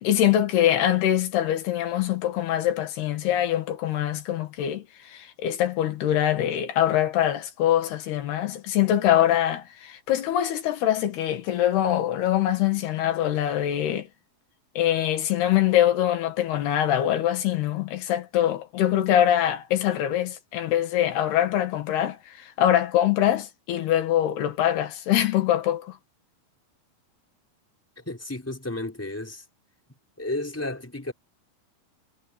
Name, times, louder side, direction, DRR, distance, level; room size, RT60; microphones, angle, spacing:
voice 1, 0.0-14.1 14.8-26.0, left 11 dB, 90° left, 3.9 m, -23 dB
voice 2, 28.0-29.4 30.2-31.1, left 2 dB, 5° left, 4.2 m, -32 dB
omnidirectional pair, 4.5 m